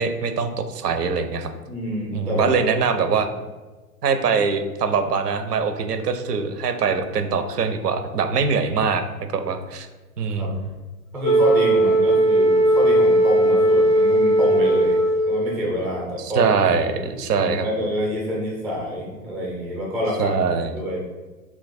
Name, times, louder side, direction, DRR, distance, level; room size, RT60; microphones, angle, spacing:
voice 1, 0.0-1.5 2.1-3.3 4.0-9.0 9.3-9.9 10.2-10.7 16.2-17.7 20.2-20.7, right 5 dB, 75° right, 8 dB, 0.5 m, -23 dB
voice 2, 1.6-2.5 10.3-10.5 11.1-15.0 15.3-16.9 17.4-20.3 20.7-21.0, equal, 5° right, -3 dB, 0.4 m, -27 dB
Wind instrument woodwind instrument, 11.2-15.6, right 1 dB, 85° left, 0.6 m, -17 dB
2.9 x 2.3 x 4.1 m, 1.2 s
figure-of-eight pair, 100°, 47 cm